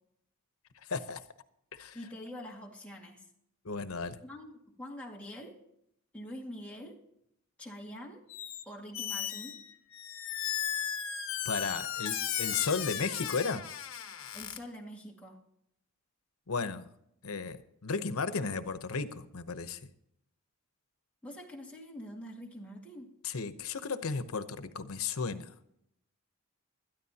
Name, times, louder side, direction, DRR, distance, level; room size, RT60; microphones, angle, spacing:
voice 1, 0.9-1.2 1.8-2.0 3.6-4.2 11.4-13.7 16.5-16.8 17.2-19.8 23.2-25.5, left 4 dB, 90° left, 11 dB, 0.9 m, -34 dB
voice 2, 1.9-3.3 4.2-5.6 6.1-7.0 7.6-8.2 8.7-9.6 14.3-15.4 21.2-23.1, equal, 5° left, -2 dB, 2.0 m, -45 dB
Squeak, 8.3-8.6 8.9-14.6, left 9 dB, 65° left, 1.1 m, -36 dB
20.5 x 13.0 x 2.9 m, 0.76 s
head